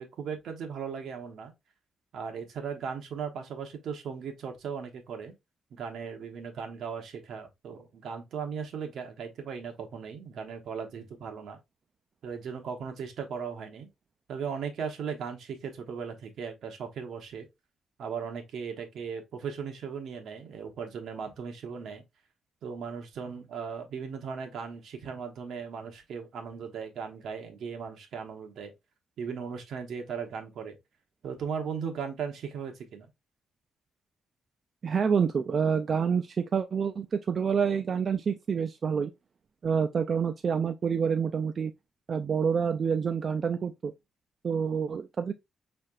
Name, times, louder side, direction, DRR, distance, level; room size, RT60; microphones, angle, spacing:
voice 1, 0.0-1.5 2.1-5.3 5.7-11.6 12.2-13.9 14.3-17.5 18.0-22.0 22.6-28.7 29.2-30.8 31.2-33.1, right 6 dB, 75° right, 1.1 m, -37 dB
voice 2, 34.8-39.1 39.6-41.7 42.1-43.9 44.4-45.3, right 6 dB, 45° right, 0.3 m, -27 dB
5.5 x 3.4 x 2.4 m
cardioid pair, 120°, 0 cm